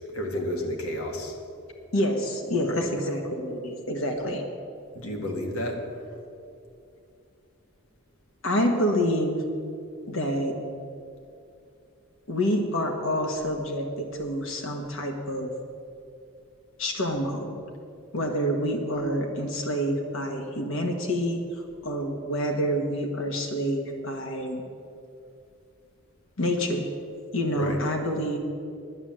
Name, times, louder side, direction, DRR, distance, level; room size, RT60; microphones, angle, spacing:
voice 1, 0.1-1.4 2.6-2.8 4.9-5.8 27.5-27.8, left 1 dB, 85° left, 2 dB, 2.0 m, -31 dB
voice 2, 1.9-4.4 8.4-9.4 10.1-10.6 12.3-15.5 16.8-17.6 18.1-24.6 26.4-26.9 27.3-28.4, equal, 70° left, 3 dB, 1.3 m, -27 dB
10.5 x 9.2 x 7.5 m, 2.5 s
head